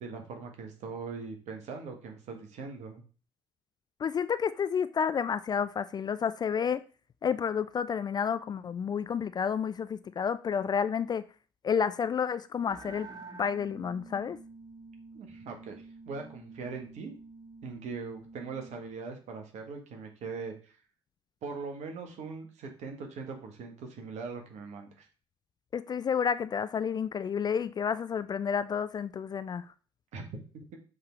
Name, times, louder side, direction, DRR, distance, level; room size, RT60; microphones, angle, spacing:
voice 1, 0.0-3.0 15.1-17.1 17.6-20.7 21.4-25.1 30.1-30.8, right 4 dB, 55° right, 1.4 m, -41 dB
voice 2, 4.0-6.8 7.2-11.2 11.6-13.1 13.4-14.4 25.7-29.6, left 7 dB, 30° left, 0.4 m, -30 dB
sound 1, 12.7-19.0, right 3 dB, 25° right, 1.0 m, -49 dB
6.5 x 3.8 x 4.3 m
figure-of-eight pair, 50°, 14 cm